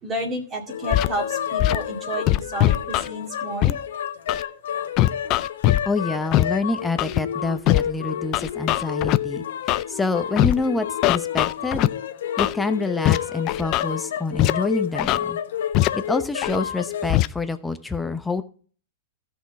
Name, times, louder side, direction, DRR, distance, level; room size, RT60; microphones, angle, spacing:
voice 1, 0.0-3.8, right 1 dB, 25° right, 1 dB, 2.2 m, -31 dB
sound 1, 0.7-17.1, left 9 dB, 80° left, 1.0 m, -30 dB
Scratching (performance technique), 0.9-1.1 1.6-1.8 2.3-3.1 3.6-3.7 4.3-4.4 5.0-5.8 6.3-6.4 7.0-7.2 7.7-7.8 8.3-9.2 9.7-9.8 10.4-10.5 11.0-11.9 12.4-12.5 13.0-13.2 13.5-13.8 14.4-14.5 15.0-15.2 15.7-15.9 16.4-16.6 17.1-17.3, left 16 dB, 40° left, 0.4 m, -20 dB
voice 2, 5.9-9.4 9.9-11.9 12.4-15.4 15.9-18.4, left 3 dB, 10° left, 8 dB, 0.9 m, -27 dB
13.5 x 6.2 x 4.8 m, 0.42 s
hypercardioid pair, 135°, 0 cm